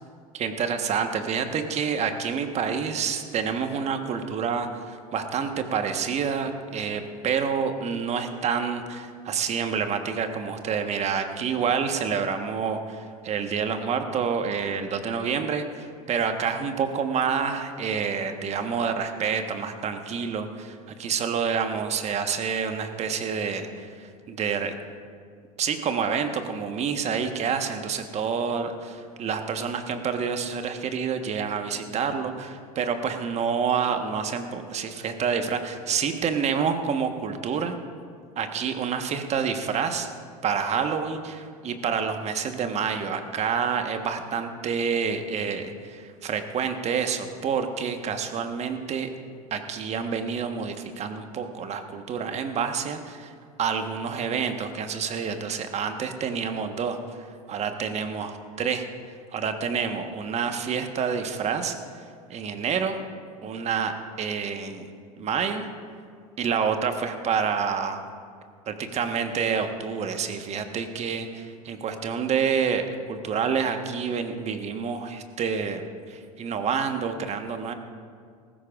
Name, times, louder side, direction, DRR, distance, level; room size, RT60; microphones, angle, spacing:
voice 1, 0.3-24.7 25.6-37.8 38.4-40.1 40.4-49.1 49.5-53.3 53.6-58.8 59.3-63.0 63.4-63.9 64.2-64.9 65.2-65.7 66.4-68.0 68.7-77.7, right 6 dB, 35° right, 7 dB, 1.3 m, -28 dB
19.0 x 15.5 x 2.5 m, 2.1 s
hypercardioid pair, 80°, 19 cm